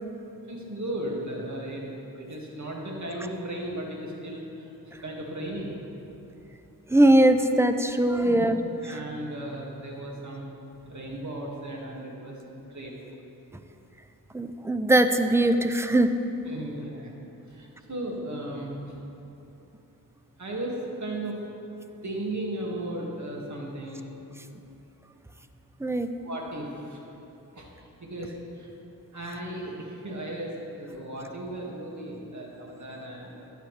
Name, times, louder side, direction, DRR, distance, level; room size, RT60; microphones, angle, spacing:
voice 1, 0.5-1.8 2.2-4.4 5.0-5.7 8.2-8.5 8.8-10.4 10.9-12.9 16.4-17.1 17.5-18.9 20.4-21.4 22.0-24.0 26.2-27.0 27.5-27.7 28.0-28.3 28.6-28.7 29.1-33.5, right 1 dB, 55° right, -2 dB, 2.0 m, -35 dB
voice 2, 6.9-8.6 8.9-9.0 14.3-16.1 25.8-26.1, right 1 dB, 10° right, 8 dB, 0.5 m, -21 dB
13.0 x 9.8 x 3.3 m, 3.0 s
cardioid pair, 70°, 35 cm